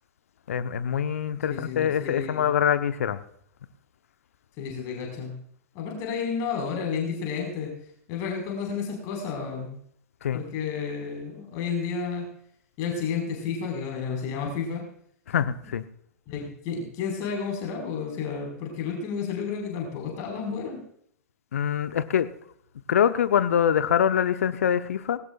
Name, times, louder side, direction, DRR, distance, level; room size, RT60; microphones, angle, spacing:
voice 1, 0.5-3.2 10.2-10.4 15.3-15.8 21.5-22.3 22.9-25.2, left 9 dB, 65° left, 12 dB, 0.8 m, -24 dB
voice 2, 1.5-2.4 4.6-5.3 5.7-7.7 8.1-9.8 10.3-12.3 12.8-14.8 16.3-20.8, left 6 dB, 40° left, 1 dB, 4.8 m, -31 dB
19.5 x 17.5 x 2.4 m, 0.66 s
figure-of-eight pair, 105°, 8 cm